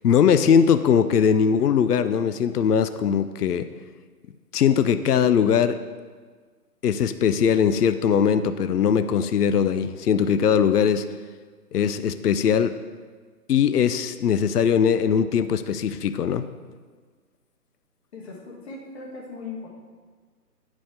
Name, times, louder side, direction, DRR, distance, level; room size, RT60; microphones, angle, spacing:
voice 1, 0.0-3.7 4.5-5.8 6.8-11.1 11.7-12.7 13.5-16.5, left 7 dB, 65° left, 11 dB, 0.6 m, -20 dB
voice 2, 18.1-19.7, left 4 dB, 40° left, -3 dB, 1.7 m, -38 dB
10.5 x 4.9 x 3.8 m, 1.5 s
figure-of-eight pair, 150°, 50 cm